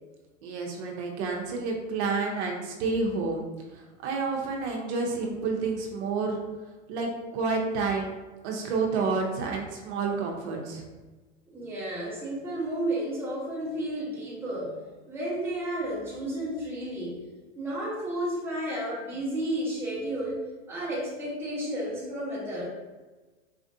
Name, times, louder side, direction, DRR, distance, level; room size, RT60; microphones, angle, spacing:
voice 1, 0.4-3.4 3.7-6.4 6.9-8.1 8.4-10.8, right 4 dB, 65° right, 1 dB, 0.7 m, -29 dB
voice 2, 11.5-17.2 17.6-22.7, right 1 dB, 5° right, -7 dB, 1.0 m, -32 dB
4.2 x 2.4 x 2.7 m, 1.2 s
supercardioid pair, 135°, 37 cm